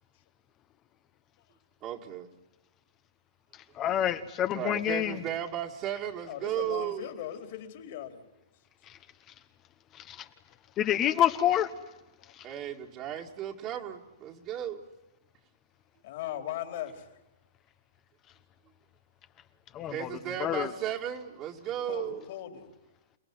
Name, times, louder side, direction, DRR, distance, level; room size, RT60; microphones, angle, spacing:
voice 1, 1.8-2.3 4.5-7.1 12.4-14.8 19.9-22.2, right 10 dB, 30° right, 0 dB, 2.3 m, -35 dB
voice 2, 3.8-5.2 10.1-10.2 10.8-11.7 19.7-20.1 20.4-20.7, left 11 dB, 25° left, 10 dB, 1.2 m, -27 dB
voice 3, 6.3-8.3 12.2-12.3 16.0-17.1 21.7-22.7, left 11 dB, 55° left, 6 dB, 3.9 m, -39 dB
29.0 x 18.5 x 9.8 m, 0.97 s
hypercardioid pair, 140°, 0 cm